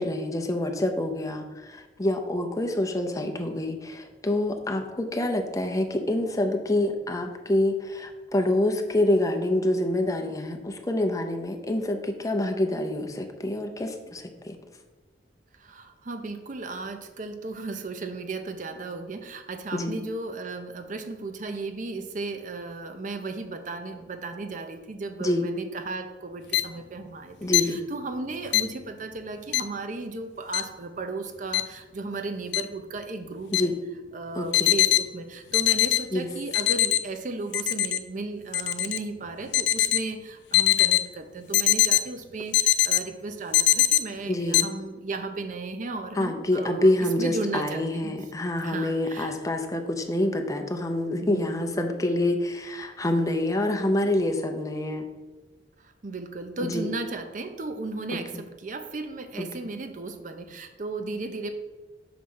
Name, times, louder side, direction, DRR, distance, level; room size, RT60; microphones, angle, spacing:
voice 1, 0.0-14.6 19.7-19.9 25.2-25.5 27.4-27.8 33.5-33.8 34.4-34.7 36.1-36.3 44.3-44.7 46.1-55.1 56.6-56.9 59.4-59.5, left 1 dB, 20° left, 4 dB, 0.6 m, -26 dB
voice 2, 15.5-33.7 34.1-46.9 47.2-48.1 48.6-49.3 51.2-51.6 55.8-61.5, right 3 dB, 45° right, 7 dB, 0.6 m, -35 dB
sound 1, 26.5-26.6 27.5-27.6 28.5-28.6 29.5-29.6 30.5-30.6 31.5-31.6 32.5-32.6 33.5-33.6 34.5-35.0 35.5-36.0 36.5-37.0 37.5-38.0 38.5-39.0 39.5-40.0 40.5-41.0 41.5-42.0 42.5-43.0 43.5-44.0 44.5-44.6, left 15 dB, 70° left, 0.4 m, -20 dB
6.0 x 3.2 x 5.5 m, 1.3 s
head